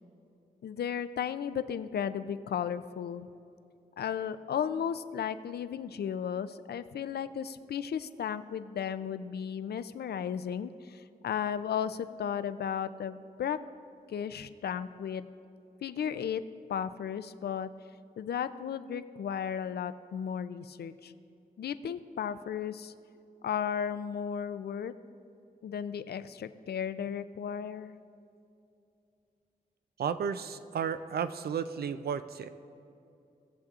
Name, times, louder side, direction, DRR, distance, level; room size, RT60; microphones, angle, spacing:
voice 1, 0.6-3.3 4.0-13.6 14.1-15.3 15.8-16.4 16.7-17.7 18.2-21.1 21.6-22.9 23.4-24.9 25.6-27.9, left 8 dB, 90° left, 12 dB, 0.4 m, -34 dB
voice 2, 30.0-32.5, right 7 dB, 75° right, 11 dB, 0.4 m, -33 dB
19.5 x 7.3 x 2.4 m, 2.7 s
wide cardioid pair, 165°, 16 cm